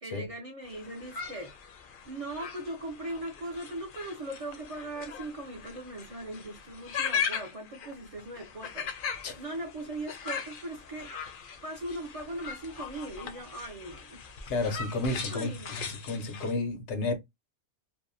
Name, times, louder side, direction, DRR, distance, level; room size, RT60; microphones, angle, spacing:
voice 1, 0.0-1.5 2.1-8.9 9.4-11.1 11.6-14.2 15.3-15.9, right 1 dB, 50° right, 0.4 m, -39 dB
sound 1, 0.6-16.5, left 6 dB, 60° left, 0.6 m, -39 dB
voice 2, 14.5-17.2, left 2 dB, 90° left, 1.0 m, -32 dB
2.6 x 2.0 x 2.5 m
omnidirectional pair, 1.2 m